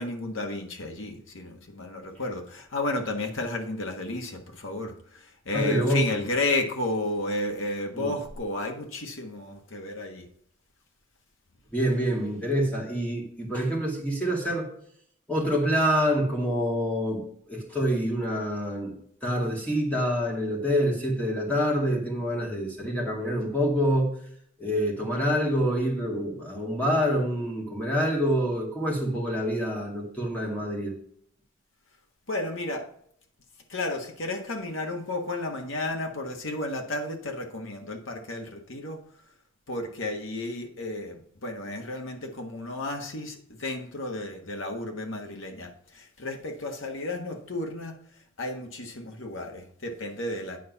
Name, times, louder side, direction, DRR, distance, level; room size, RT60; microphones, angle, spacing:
voice 1, 0.0-10.2 32.3-32.9 33.7-39.0 39.7-47.9 48.4-50.6, left 2 dB, 75° left, 3 dB, 1.5 m, -32 dB
voice 2, 5.5-6.2 7.9-8.1 11.7-14.7 15.3-17.2 17.5-19.0 19.2-24.2 24.6-30.9, equal, 5° left, -3 dB, 2.3 m, -26 dB
9.4 x 4.3 x 5.4 m, 0.65 s
head